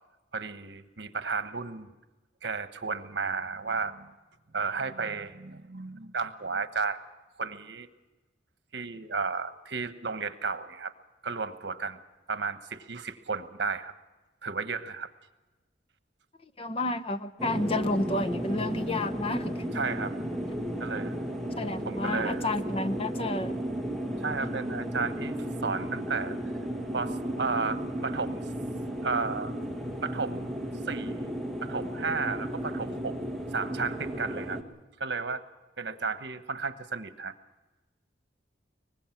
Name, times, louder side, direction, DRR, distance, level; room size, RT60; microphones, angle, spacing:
voice 1, 0.3-1.9 2.4-4.1 4.5-7.0 7.4-7.9 8.7-10.9 11.2-12.0 12.3-13.9 14.4-15.1 19.7-20.2 20.8-21.2 21.8-22.5 24.2-25.3 25.6-26.3 26.9-28.4 29.0-29.6 30.0-30.6 30.8-31.3 31.6-33.2 33.5-34.6 35.0-35.4 35.8-37.3, right 4 dB, 70° right, 10 dB, 1.2 m, -33 dB
voice 2, 16.6-19.6 21.6-23.6, left 2 dB, 30° left, 12 dB, 0.7 m, -30 dB
sound 1, 17.4-34.6, equal, ahead, 1.6 m, -34 dB
24.0 x 20.0 x 6.0 m, 1.1 s
head